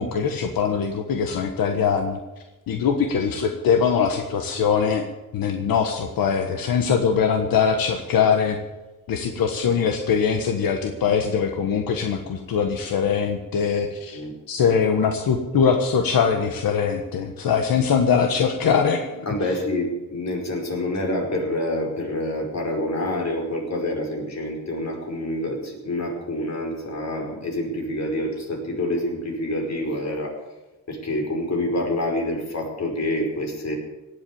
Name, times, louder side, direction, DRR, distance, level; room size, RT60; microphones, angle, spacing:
voice 1, 0.0-2.2 2.7-5.0 5.3-8.6 9.1-14.2 14.5-19.2, left 6 dB, 85° left, 5 dB, 1.4 m, -22 dB
voice 2, 19.3-30.4 30.9-33.7, left 1 dB, 50° left, 1 dB, 5.3 m, -27 dB
18.0 x 8.5 x 8.7 m, 1.1 s
cardioid pair, 100°, 34 cm